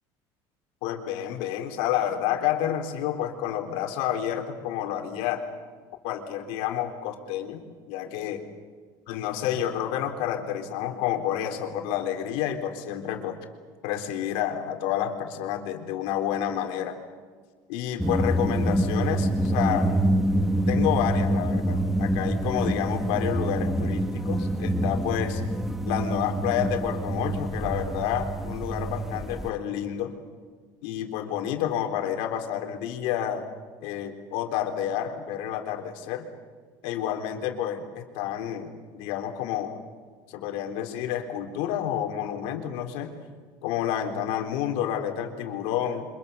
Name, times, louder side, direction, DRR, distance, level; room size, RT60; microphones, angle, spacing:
voice 1, 0.8-5.4 6.0-7.6 7.9-8.4 9.1-13.4 13.8-17.0 17.7-19.9 20.7-25.4 25.8-30.1 30.8-33.4 33.8-36.3 36.8-39.8 40.3-43.1 43.6-46.1, left 10 dB, 85° left, 4 dB, 3.7 m, -29 dB
sound 1, 18.0-29.5, right 1 dB, 5° right, 1.1 m, -26 dB
29.5 x 26.0 x 6.8 m, 1.5 s
cardioid pair, 165°, 10 cm